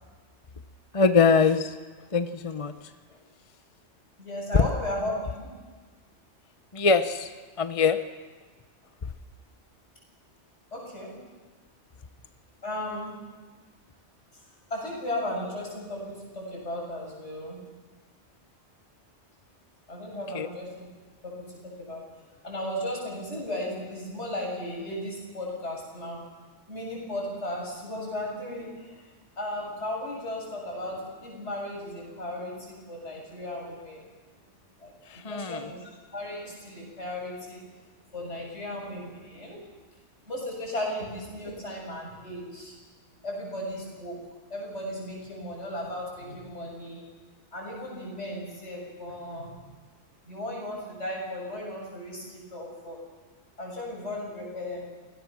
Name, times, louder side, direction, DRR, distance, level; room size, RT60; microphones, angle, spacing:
voice 1, 0.9-1.8 2.1-2.7 4.5-4.7 6.7-7.3 7.6-8.0 20.3-20.5 35.1-35.7, left 5 dB, 30° left, 10 dB, 0.8 m, -22 dB
voice 2, 4.2-5.5 10.7-11.1 12.6-13.2 14.3-14.4 14.7-17.6 19.9-20.9 21.2-21.5 21.8-22.0 22.4-26.2 26.7-29.1 29.4-34.0 34.8-37.6 38.1-39.6 40.3-42.7 43.2-44.2 44.5-47.0 47.5-49.5 50.2-53.0 53.6-54.8, left 1 dB, 70° left, -2 dB, 7.5 m, -35 dB
28.0 x 18.0 x 6.2 m, 1.3 s
omnidirectional pair, 1.2 m